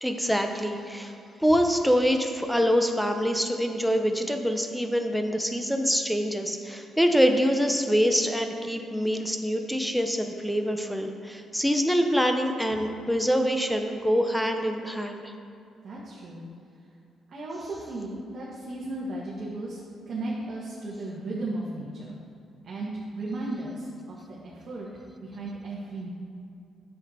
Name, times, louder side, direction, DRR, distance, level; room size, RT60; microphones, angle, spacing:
voice 1, 0.0-1.1 1.4-15.3, equal, ahead, 5 dB, 0.8 m, -25 dB
voice 2, 15.8-16.4 17.3-22.2 22.6-24.9 25.2-26.1, right 2 dB, 50° right, -6 dB, 1.6 m, -35 dB
9.5 x 7.3 x 4.4 m, 2.5 s
cardioid pair, 90°, 0 cm